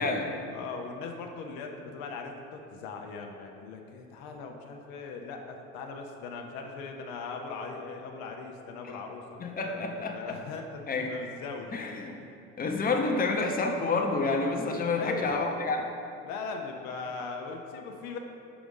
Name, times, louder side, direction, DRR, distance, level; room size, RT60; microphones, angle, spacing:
voice 1, 0.0-0.3 8.8-9.0 9.4-10.4 10.9-11.1 11.7-12.2 12.6-15.9, left 3 dB, 25° left, 2 dB, 0.8 m, -29 dB
voice 2, 0.5-12.3 15.0-15.5 16.2-18.2, left 4 dB, 75° left, 2 dB, 0.7 m, -40 dB
5.0 x 4.9 x 5.3 m, 2.6 s
supercardioid pair, 75°, 35 cm